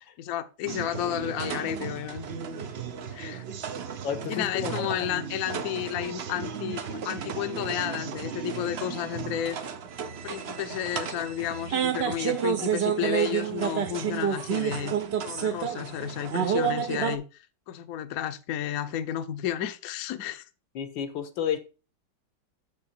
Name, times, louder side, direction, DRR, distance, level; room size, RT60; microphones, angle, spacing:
voice 1, 0.2-2.3 3.1-3.4 4.3-9.6 10.2-14.9 15.2-17.2 17.7-20.4, left 11 dB, 60° left, 1.0 m, -32 dB
sound 1, 0.6-17.2, right 8 dB, 65° right, 0.6 m, -31 dB
voice 2, 4.0-5.0 20.7-21.6, left 8 dB, 80° left, 1.8 m, -31 dB
7.3 x 5.9 x 4.2 m
omnidirectional pair, 2.1 m